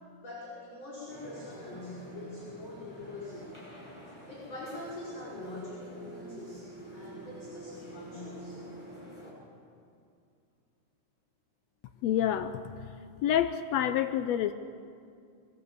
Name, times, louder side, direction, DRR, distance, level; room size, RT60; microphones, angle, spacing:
voice 1, 0.2-3.6 4.3-8.6, left 2 dB, 40° left, -7 dB, 6.0 m, -43 dB
sound 1, 1.1-9.5, equal, 10° left, 6.1 m, -48 dB
voice 2, 12.0-12.6 13.2-14.5, left 10 dB, 75° left, 9 dB, 1.6 m, -27 dB
23.5 x 16.5 x 8.3 m, 2.4 s
omnidirectional pair, 3.5 m